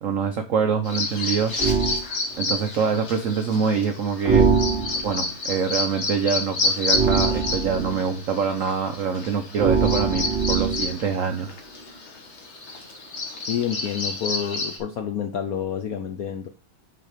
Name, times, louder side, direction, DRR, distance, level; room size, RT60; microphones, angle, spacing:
voice 1, 0.0-1.5 2.4-4.5 5.0-11.5, right 6 dB, 85° right, 7 dB, 0.7 m, -25 dB
Bird vocalization bird call bird song, 0.8-14.8, left 3 dB, 40° left, 1.3 m, -30 dB
sound 1, 1.6-2.0 4.3-5.2 6.9-8.0 9.6-11.0, right 5 dB, 15° right, 2.9 m, -22 dB
voice 2, 13.5-16.5, left 8 dB, 75° left, 5 dB, 0.8 m, -28 dB
6.4 x 4.3 x 4.9 m, 0.34 s
omnidirectional pair, 2.3 m